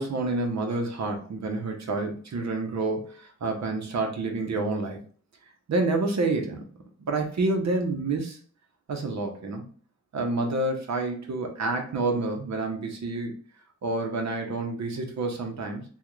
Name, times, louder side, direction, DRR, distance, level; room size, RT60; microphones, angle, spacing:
voice 1, 0.0-5.0 5.7-6.6 7.0-8.4 8.9-9.6 10.1-13.3 13.8-15.8, right 3 dB, 65° right, 3 dB, 0.9 m, -28 dB
3.5 x 2.4 x 3.1 m, 0.44 s
cardioid pair, 65°, 29 cm